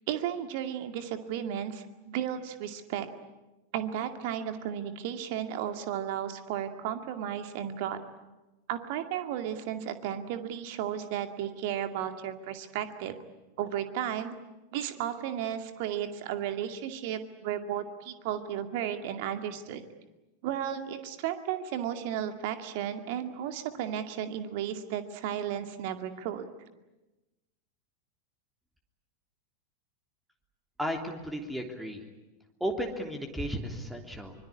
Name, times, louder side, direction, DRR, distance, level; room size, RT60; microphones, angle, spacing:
voice 1, 0.1-3.1 3.7-8.0 8.7-13.1 13.6-14.4 14.7-19.8 20.4-26.5, right 10 dB, 50° right, 8 dB, 2.2 m, -34 dB
voice 2, 30.8-32.1 32.6-34.3, equal, 5° right, 4 dB, 3.2 m, -34 dB
25.0 x 23.0 x 9.9 m, 1.1 s
figure-of-eight pair, 90°, 0 cm